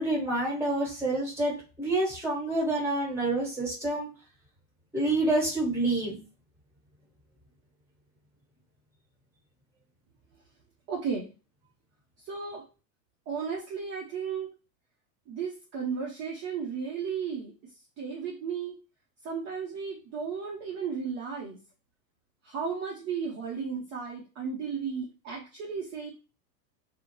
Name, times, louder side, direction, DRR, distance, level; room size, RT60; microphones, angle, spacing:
voice 1, 0.0-4.1 4.9-6.2, right 2 dB, 5° right, -5 dB, 1.3 m, -28 dB
voice 2, 10.9-11.3 12.2-12.6 13.3-14.5 15.3-17.5 18.0-18.8 19.2-21.6 22.4-26.1, right 6 dB, 35° right, -4 dB, 0.6 m, -34 dB
2.3 x 2.1 x 3.0 m, 0.33 s
hypercardioid pair, 110°, 49 cm